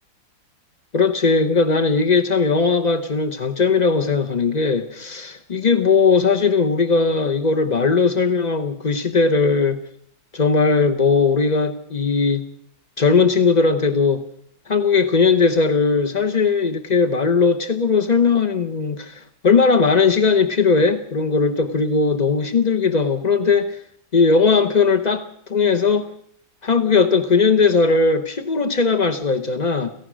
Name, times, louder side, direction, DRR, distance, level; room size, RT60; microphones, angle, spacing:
voice 1, 0.9-9.8 10.3-12.4 13.0-14.2 14.7-23.8 24.1-26.1 26.6-29.9, left 4 dB, 40° left, 6 dB, 0.6 m, -18 dB
28.0 x 15.5 x 6.3 m, 0.68 s
omnidirectional pair, 2.1 m